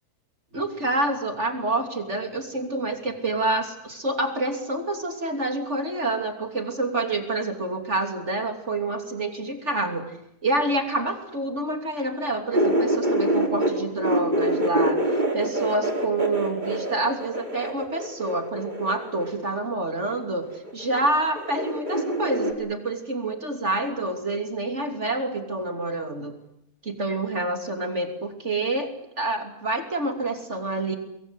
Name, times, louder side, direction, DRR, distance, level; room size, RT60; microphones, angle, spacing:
voice 1, 0.5-10.1 10.4-26.4 26.8-28.9 29.2-31.0, right 2 dB, 45° right, 5 dB, 3.4 m, -27 dB
sound 1, 12.5-13.7 14.0-19.5 20.5-21.1 21.4-22.5, right 1 dB, 30° right, 5.2 m, -25 dB
26.5 x 23.0 x 8.2 m, 0.79 s
omnidirectional pair, 1.6 m